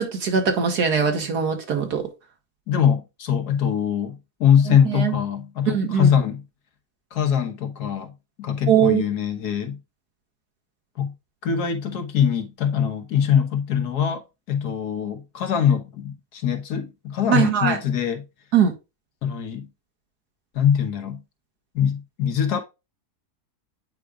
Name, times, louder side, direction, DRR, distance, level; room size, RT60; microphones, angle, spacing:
voice 1, 0.0-2.0 4.7-5.2 5.7-6.2 8.6-9.0 17.3-17.8 18.5-18.7, right 7 dB, 85° right, 2.2 m, -21 dB
voice 2, 2.7-6.4 7.1-8.1 8.4-9.8 11.0-11.1 11.4-14.2 14.5-18.2 19.2-19.7 20.6-21.2 21.8-22.6, left 8 dB, 80° left, 1.7 m, -22 dB
9.1 x 5.0 x 2.3 m
omnidirectional pair, 1.6 m